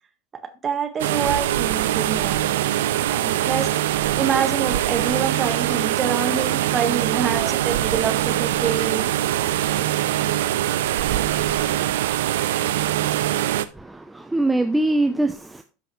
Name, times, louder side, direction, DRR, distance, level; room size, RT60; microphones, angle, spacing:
voice 1, 0.6-2.5 3.1-9.1, right 6 dB, 30° right, 1.5 m, -26 dB
sound 1, 1.0-13.6, right 13 dB, 70° right, 0.5 m, -23 dB
voice 2, 13.7-15.6, right 2 dB, 10° right, 0.7 m, -23 dB
12.5 x 5.6 x 3.1 m
figure-of-eight pair, 80°, 0 cm